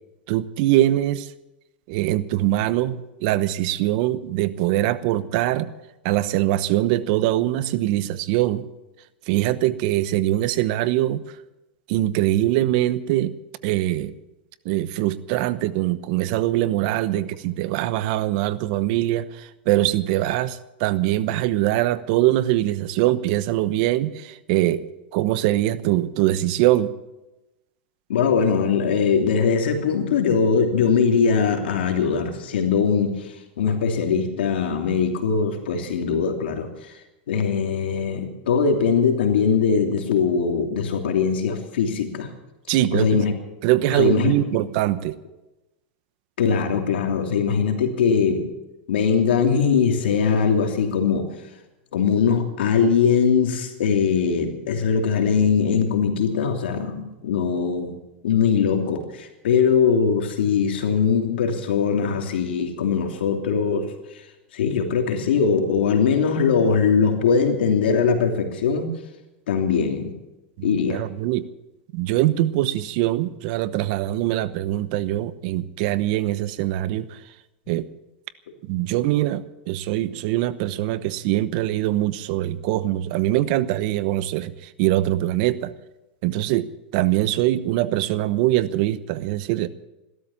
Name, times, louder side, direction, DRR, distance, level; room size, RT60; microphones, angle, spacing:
voice 1, 0.3-1.3 1.9-5.7 6.0-8.7 9.3-11.2 11.9-13.3 13.6-14.1 14.6-24.9 25.1-26.9 42.7-43.2 43.6-45.2 70.6-71.4 71.9-77.2 77.7-77.9 78.7-85.7 86.2-86.7 86.9-89.7, right 14 dB, 55° right, 14 dB, 1.0 m, -22 dB
voice 2, 28.1-33.3 33.6-36.7 37.3-42.3 42.9-43.3 43.9-44.3 46.4-48.5 48.9-51.3 51.9-57.9 58.2-63.9 64.5-68.9 69.5-70.1 70.6-71.0, left 6 dB, 85° left, 4 dB, 2.9 m, -21 dB
15.5 x 13.0 x 7.2 m, 0.98 s
supercardioid pair, 135°, 6 cm